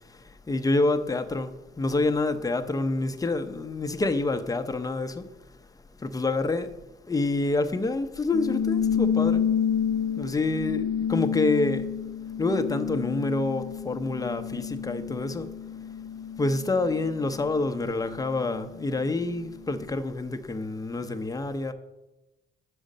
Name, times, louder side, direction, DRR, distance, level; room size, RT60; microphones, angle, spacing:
voice 1, 0.5-5.3 6.0-6.7 7.1-9.4 10.2-11.9 12.4-15.5 16.4-21.7, left 2 dB, 20° left, 0.7 m, -27 dB
sound 1, 8.3-19.2, left 8 dB, 60° left, 0.5 m, -30 dB
6.3 x 5.0 x 6.5 m
cardioid pair, 90°, 20 cm